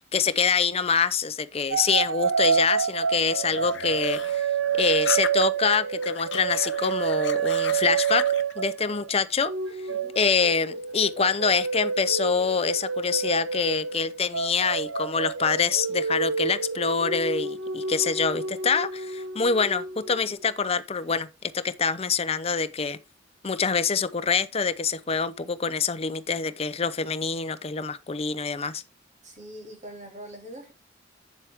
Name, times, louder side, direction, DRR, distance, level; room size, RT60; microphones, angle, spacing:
voice 1, 0.1-4.5 4.7-8.2 8.6-9.5 10.2-21.3 21.5-23.0 23.4-28.8, left 5 dB, 30° left, 0.6 m, -25 dB
sound 1, 1.7-9.1 9.4-20.5, right 6 dB, 85° right, 0.7 m, -28 dB
sound 2, 3.5-5.8 6.0-8.5, left 7 dB, 65° left, 0.8 m, -37 dB
voice 2, 29.2-30.7, equal, 40° right, 2.7 m, -43 dB
8.3 x 7.3 x 3.5 m
head